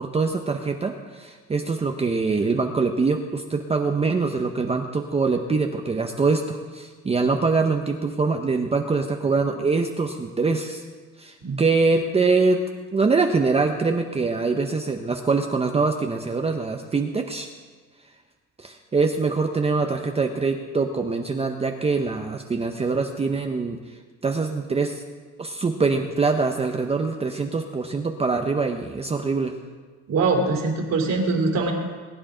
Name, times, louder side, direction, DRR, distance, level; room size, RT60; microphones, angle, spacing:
voice 1, 0.0-10.8 11.2-12.6 12.9-17.5 18.6-23.8 24.2-25.0 25.4-29.5, right 4 dB, 20° right, 4 dB, 0.6 m, -24 dB
voice 2, 30.1-31.7, right 3 dB, 60° right, 1 dB, 2.8 m, -22 dB
20.5 x 10.0 x 3.8 m, 1.5 s
cardioid pair, 145°, 31 cm